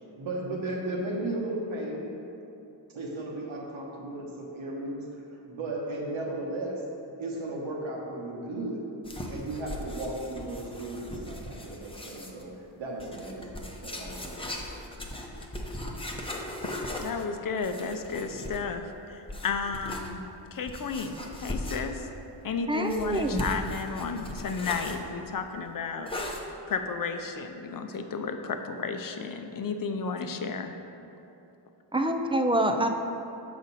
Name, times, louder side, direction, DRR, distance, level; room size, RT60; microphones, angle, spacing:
voice 1, 0.2-2.1 2.9-5.1 5.5-6.9 7.2-8.9 9.3-14.6, right 2 dB, 80° right, -2 dB, 1.2 m, -35 dB
sound 1, 9.0-12.4 13.0-18.8 19.3-20.1 20.7-22.1 22.8-25.0 26.1-26.4, left 1 dB, 10° left, 0.7 m, -38 dB
voice 2, 16.6-20.3 20.5-22.1 22.4-26.1 26.7-30.7, left 5 dB, 45° left, 6 dB, 0.6 m, -33 dB
voice 3, 22.7-23.4 31.9-32.9, right 1 dB, 15° right, 5 dB, 0.3 m, -26 dB
6.7 x 5.1 x 4.1 m, 2.9 s
cardioid pair, 75°, 46 cm